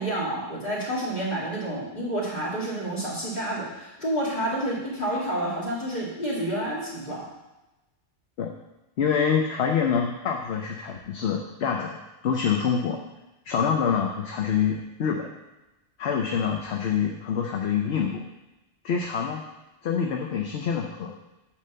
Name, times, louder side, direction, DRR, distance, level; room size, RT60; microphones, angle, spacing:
voice 1, 0.0-7.2, right 1 dB, 45° left, -6 dB, 2.6 m, -29 dB
voice 2, 9.0-12.0 12.2-13.0 13.5-15.3 16.0-18.2 18.8-19.4 19.8-21.1, left 7 dB, 70° left, 1 dB, 1.0 m, -26 dB
8.6 x 3.4 x 6.7 m, 1.0 s
omnidirectional pair, 1.2 m